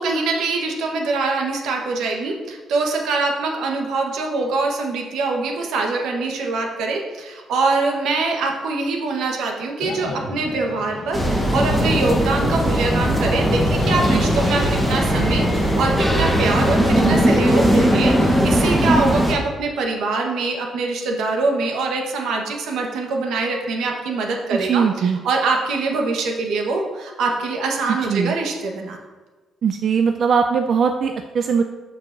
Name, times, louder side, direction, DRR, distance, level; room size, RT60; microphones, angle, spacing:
voice 1, 0.0-29.0, right 3 dB, 80° right, 2 dB, 1.1 m, -24 dB
sound 1, 9.8-18.7, left 3 dB, 65° left, 1.2 m, -32 dB
sound 2, 11.1-19.3, equal, ahead, 1.0 m, -19 dB
voice 2, 24.5-25.2 28.1-28.4 29.6-31.6, right 6 dB, 45° right, 6 dB, 0.3 m, -20 dB
12.5 x 4.7 x 2.6 m, 1.3 s
cardioid pair, 145°, 0 cm